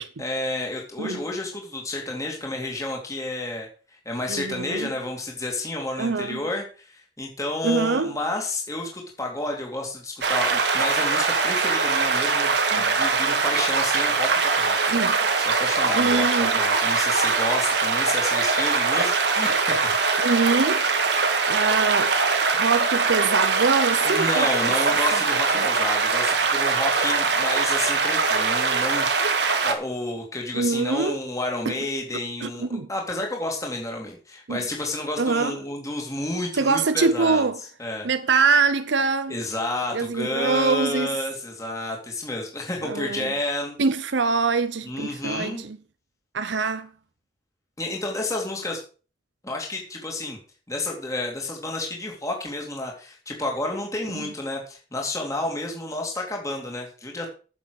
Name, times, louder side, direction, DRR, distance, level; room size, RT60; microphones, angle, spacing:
voice 1, 0.2-3.7 4.0-14.9 15.4-19.9 24.0-37.4 37.8-38.1 39.3-43.8 44.8-45.6 47.8-48.8 49.4-50.4 50.7-57.3, left 2 dB, 20° left, 2.6 m, -30 dB
voice 2, 4.3-4.9 6.0-6.4 7.6-8.2 12.7-12.9 14.9-15.1 15.9-16.5 20.2-20.8 21.5-22.1 22.5-24.7 25.1-25.2 25.5-25.7 30.5-31.2 31.7-31.8 32.4-32.9 34.5-34.6 35.2-35.6 36.6-37.6 38.0-39.4 39.9-41.1 42.8-43.3 43.8-45.8 46.3-46.9 54.1-54.3, right 4 dB, 80° right, 0.8 m, -24 dB
sound 1, 10.2-29.7, right 4 dB, 65° right, 1.9 m, -22 dB
9.8 x 7.2 x 6.5 m
head